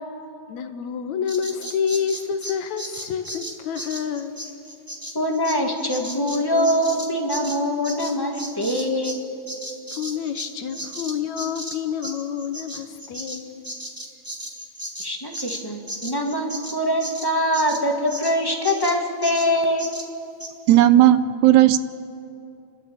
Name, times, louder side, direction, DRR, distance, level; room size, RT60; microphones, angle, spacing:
voice 1, 0.5-4.4 9.9-13.6, left 7 dB, 75° left, 8 dB, 2.3 m, -28 dB
Bird vocalization bird call bird song, 1.3-9.2 9.5-18.4 18.6-19.0 19.2-19.5 19.8-20.1 20.4-20.5, right 1 dB, 15° right, 0.7 m, -35 dB
voice 2, 5.1-9.2 15.0-19.9, equal, 15° left, 1 dB, 0.9 m, -23 dB
voice 3, 20.7-21.8, right 13 dB, 80° right, 14 dB, 1.9 m, -14 dB
29.5 x 12.5 x 8.6 m, 2.6 s
omnidirectional pair, 3.4 m